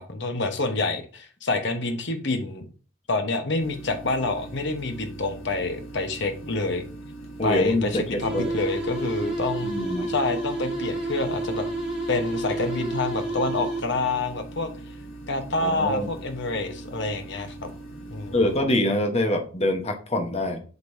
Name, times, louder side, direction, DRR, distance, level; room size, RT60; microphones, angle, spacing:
voice 1, 0.0-2.7 3.1-6.8 7.4-9.7 10.1-11.7 12.1-14.7 15.3-17.7 18.1-18.5, left 3 dB, 60° left, 7 dB, 1.1 m, -27 dB
sound 1, 3.6-18.6, right 2 dB, 90° left, 1.9 m, -41 dB
voice 2, 7.4-8.5 9.6-10.1 15.6-16.1 18.3-20.6, left 1 dB, 30° left, 5 dB, 1.1 m, -25 dB
sound 2, 8.2-14.1, right 2 dB, 5° right, 3.7 m, -30 dB
8.0 x 5.3 x 2.7 m, 0.39 s
head